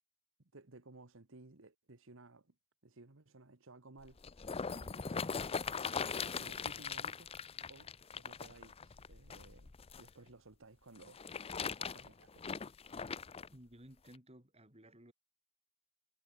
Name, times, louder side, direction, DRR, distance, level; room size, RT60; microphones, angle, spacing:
voice 1, 0.4-2.5 2.8-4.2 4.7-5.7 6.0-7.3 7.7-12.6, right 2 dB, 65° right, 1.5 m, -58 dB
sound 1, 4.0-10.1 11.0-13.5 14.1-14.2, left 5 dB, 25° left, 0.5 m, -40 dB
voice 2, 13.5-15.1, right 1 dB, 30° right, 5.4 m, -57 dB
head